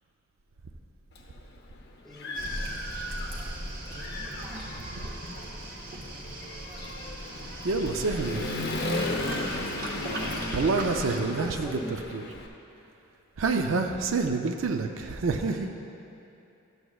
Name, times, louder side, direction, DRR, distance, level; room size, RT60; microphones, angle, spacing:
Human voice / Motorcycle, 1.2-1.3 1.7-3.5 3.9-12.5, left 2 dB, 50° left, 0.8 m, -35 dB
voice 1, 2.0-3.6 11.2-11.9 15.5-15.6, equal, ahead, -3 dB, 0.7 m, -43 dB
Waves surf, 2.3-11.2, right 1 dB, 40° right, 1.1 m, -38 dB
voice 2, 7.6-8.8 10.5-12.2 13.4-15.7, right 3 dB, 65° right, 5 dB, 0.4 m, -28 dB
12.5 x 8.0 x 2.3 m, 2.7 s
head